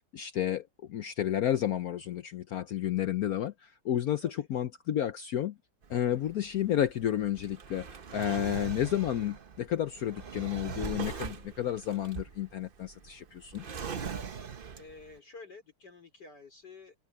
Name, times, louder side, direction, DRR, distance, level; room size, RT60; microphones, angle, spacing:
voice 1, 0.1-5.5 5.9-7.9 8.1-13.7, left 11 dB, 75° left, 0.8 m, -31 dB
Drawer open or close, 5.8-15.1, right 6 dB, 75° right, 0.5 m, -41 dB
voice 2, 14.7-16.9, left 3 dB, 50° left, 4.6 m, -50 dB
omnidirectional pair, 2.3 m